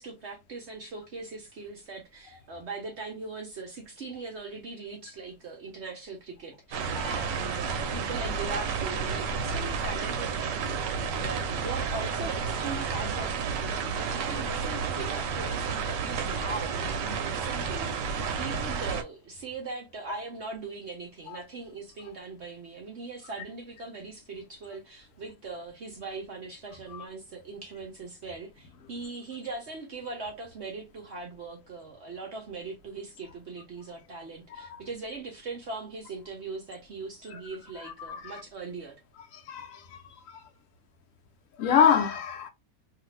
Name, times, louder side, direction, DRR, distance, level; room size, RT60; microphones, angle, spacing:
voice 1, 0.0-39.0, right 3 dB, 55° right, 0.7 m, -40 dB
sound 1, 6.7-19.0, right 5 dB, 80° right, 1.2 m, -31 dB
voice 2, 37.8-38.4 39.5-40.0 41.6-42.5, left 7 dB, 65° left, 0.8 m, -25 dB
2.8 x 2.5 x 3.1 m
omnidirectional pair, 2.0 m